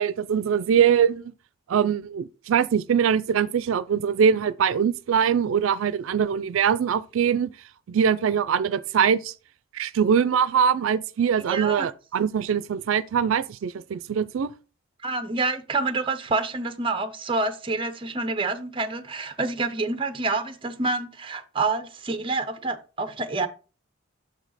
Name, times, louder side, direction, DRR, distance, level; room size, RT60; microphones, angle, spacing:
voice 1, 0.0-1.3 1.7-7.5 7.9-9.3 9.7-14.5, right 7 dB, 90° right, 0.4 m, -22 dB
voice 2, 11.4-11.9 15.0-23.5, right 3 dB, 25° right, 0.7 m, -27 dB
6.5 x 5.1 x 4.0 m
head